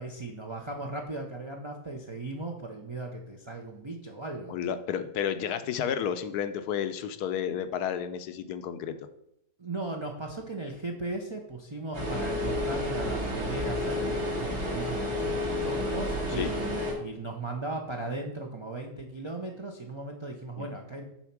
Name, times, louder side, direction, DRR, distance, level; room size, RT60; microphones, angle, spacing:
voice 1, 0.0-4.6 9.6-21.0, right 2 dB, 40° right, 1 dB, 0.4 m, -37 dB
voice 2, 4.5-9.0 16.4-16.5 20.6-20.7, left 8 dB, 75° left, 10 dB, 1.1 m, -31 dB
sound 1, 11.9-16.9, left 1 dB, 70° right, 2.9 m, -30 dB
7.1 x 4.3 x 5.9 m, 0.79 s
omnidirectional pair, 1.8 m